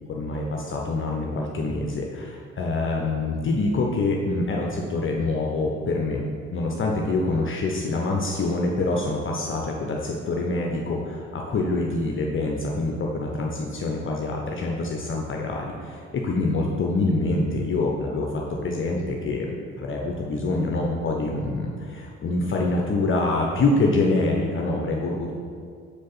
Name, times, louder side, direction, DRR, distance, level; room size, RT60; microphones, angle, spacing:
voice 1, 0.1-6.2 6.5-25.3, left 2 dB, 35° left, 0 dB, 0.8 m, -25 dB
6.3 x 5.1 x 4.0 m, 2.2 s
figure-of-eight pair, 50°, 36 cm